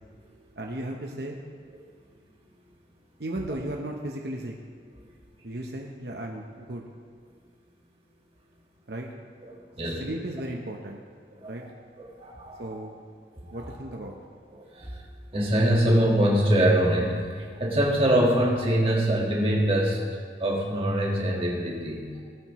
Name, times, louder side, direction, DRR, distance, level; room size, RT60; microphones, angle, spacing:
voice 1, 0.6-1.4 3.2-4.5 5.4-6.9 8.9-9.1 9.8-11.0 11.5-11.6 12.6-13.0 13.5-14.2, right 1 dB, 70° right, 0 dB, 0.9 m, -35 dB
voice 2, 9.5-10.0 11.3-11.5 12.0-12.7 13.3-13.8 14.5-15.0 15.3-20.0 20.4-22.1, right 1 dB, 30° right, -2 dB, 1.7 m, -24 dB
17.5 x 9.0 x 3.1 m, 2.1 s
head